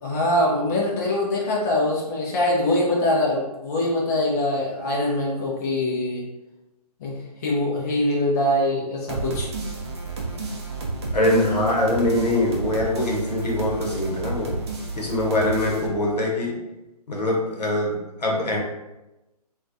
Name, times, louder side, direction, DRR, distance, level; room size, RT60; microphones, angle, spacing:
voice 1, 0.0-6.2 7.0-9.5, left 1 dB, 25° left, -4 dB, 0.4 m, -23 dB
sound 1, 9.1-15.9, right 3 dB, 40° right, 0.5 m, -31 dB
voice 2, 11.1-14.5 15.0-16.6 17.1-18.6, left 1 dB, 80° left, -2 dB, 0.8 m, -23 dB
2.2 x 2.2 x 2.5 m, 1.0 s
figure-of-eight pair, 140°, 21 cm